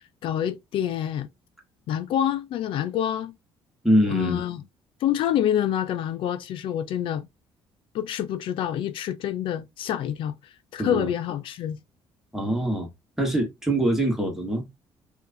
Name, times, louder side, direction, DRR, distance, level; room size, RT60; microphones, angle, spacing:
voice 1, 0.2-1.3 1.9-3.3 4.1-4.6 5.0-7.3 7.9-11.8, left 10 dB, 65° left, 0.4 m, -27 dB
voice 2, 3.8-4.4 10.8-11.1 12.3-12.9 13.2-14.7, right 1 dB, 5° right, 1.3 m, -23 dB
4.6 x 2.5 x 2.6 m
cardioid pair, 130°, 10 cm